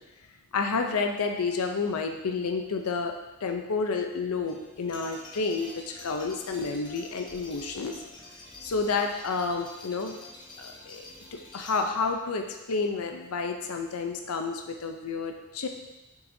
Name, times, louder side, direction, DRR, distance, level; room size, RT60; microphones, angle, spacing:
voice 1, 0.5-3.1 3.4-7.9 8.6-10.2 10.6-11.1 11.3-15.7, left 4 dB, 85° left, 4 dB, 0.6 m, -30 dB
sound 1, 4.3-12.1, left 2 dB, 20° left, 0.9 m, -47 dB
7.6 x 5.8 x 2.7 m, 1.0 s
head